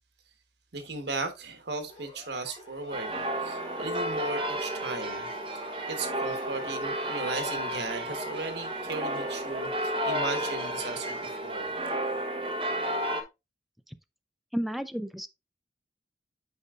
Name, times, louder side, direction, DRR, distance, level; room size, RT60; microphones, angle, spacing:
voice 1, 0.7-5.3 5.9-11.7, right 3 dB, 80° right, 1.2 m, -36 dB
Siren, 1.9-9.9, left 2 dB, 30° left, 3.4 m, -50 dB
sound 1, 2.9-13.2, right 1 dB, 30° right, 0.9 m, -32 dB
voice 2, 14.5-15.3, equal, ahead, 0.3 m, -32 dB
8.3 x 5.1 x 2.5 m
head